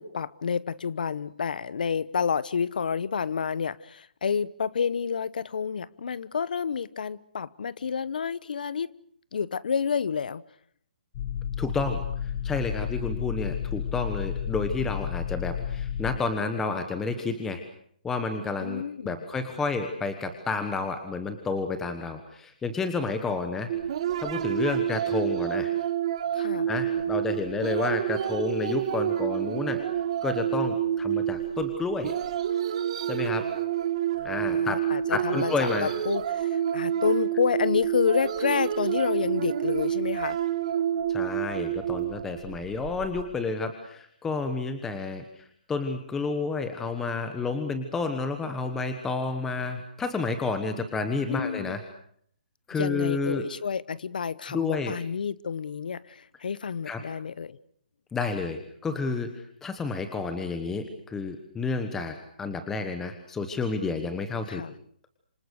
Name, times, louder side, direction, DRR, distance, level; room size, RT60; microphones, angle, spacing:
voice 1, 0.0-8.9 9.3-10.4 18.6-19.2 26.3-26.7 34.2-40.4 51.3-51.8 52.7-57.6 64.5-64.7, left 6 dB, 65° left, 1.0 m, -29 dB
sound 1, 11.1-16.2, left 9 dB, 30° left, 1.2 m, -32 dB
voice 2, 11.6-17.6 18.0-23.7 24.2-25.7 26.7-29.8 30.2-32.1 33.0-33.5 34.2-34.8 35.1-35.9 41.1-51.8 52.7-53.5 54.5-54.9 56.9-57.0 58.1-64.6, left 4 dB, 5° left, 1.2 m, -30 dB
sound 2, 23.7-43.2, right 10 dB, 35° right, 2.0 m, -28 dB
27.0 x 25.5 x 6.5 m
hypercardioid pair, 170°, 5 cm